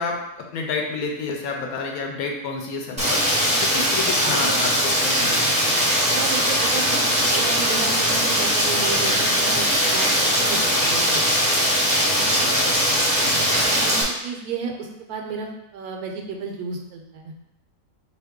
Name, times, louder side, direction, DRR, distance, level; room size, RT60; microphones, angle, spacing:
voice 1, 0.0-3.2 3.6-5.5 12.3-12.8, left 4 dB, 75° left, 1 dB, 1.0 m, -30 dB
Rain, 3.0-14.0, equal, 5° right, 0.6 m, -20 dB
voice 2, 4.2-4.7 6.1-6.8 7.3-11.2 13.2-13.4 13.6-15.5 15.7-17.3, right 5 dB, 80° right, 1 dB, 1.2 m, -32 dB
3.8 x 2.9 x 3.5 m, 0.87 s
omnidirectional pair, 1.6 m